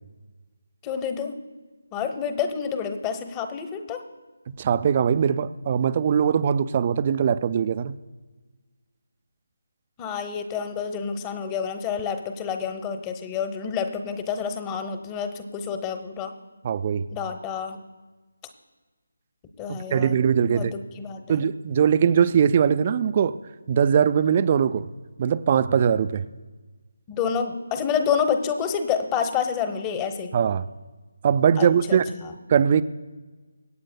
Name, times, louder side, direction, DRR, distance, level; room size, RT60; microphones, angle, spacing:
voice 1, 0.8-1.4 1.9-4.0 10.0-16.3 17.1-17.8 19.6-20.1 20.5-21.4 27.1-30.3 31.6-32.3, left 7 dB, 15° left, 0.9 m, -28 dB
voice 2, 4.5-8.0 16.6-17.0 19.7-20.7 21.3-23.4 23.7-24.9 25.2-26.3 30.3-30.7 31.2-32.1 32.5-32.8, right 7 dB, 30° right, 0.4 m, -21 dB
25.0 x 8.8 x 2.2 m
figure-of-eight pair, 155°, 0 cm